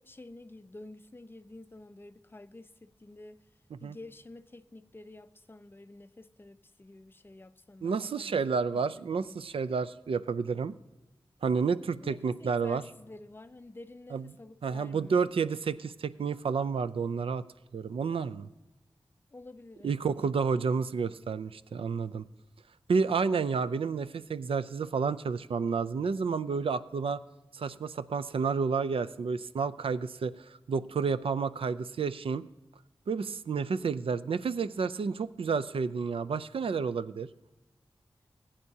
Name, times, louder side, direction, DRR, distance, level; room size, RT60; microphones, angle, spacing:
voice 1, 0.0-3.4 3.8-9.3 12.0-15.3 19.3-20.1, left 2 dB, 25° left, 0.5 m, -50 dB
voice 2, 7.8-10.7 11.4-12.8 14.1-14.3 14.6-17.4 17.7-18.5 19.8-22.3 22.9-27.2 27.5-32.4 33.1-37.3, right 5 dB, 80° right, 0.4 m, -30 dB
19.5 x 8.8 x 2.8 m
wide cardioid pair, 95°, 9 cm